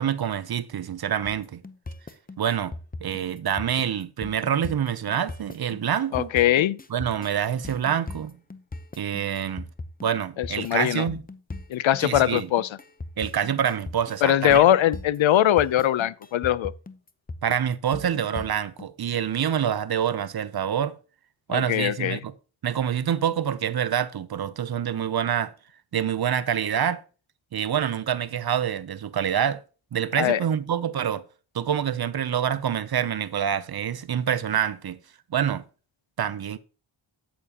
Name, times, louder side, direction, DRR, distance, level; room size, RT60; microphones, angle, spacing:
voice 1, 0.0-1.6 2.4-2.7 3.0-6.3 6.9-8.4 9.0-9.7 10.0-11.2 12.0-12.5 13.2-14.6 17.4-21.0 21.5-22.3 22.6-25.5 25.9-27.0 27.5-29.6 29.9-31.2 31.5-35.0 35.3-35.6 36.2-36.6, right 9 dB, 50° right, 0.7 m, -26 dB
sound 1, 1.2-18.8, left 3 dB, 20° left, 0.7 m, -38 dB
voice 2, 6.1-6.8 10.4-11.1 11.7-12.8 14.2-16.7 21.5-22.2 30.2-30.4, left 11 dB, 75° left, 0.6 m, -21 dB
8.9 x 8.5 x 2.9 m
wide cardioid pair, 90°, 47 cm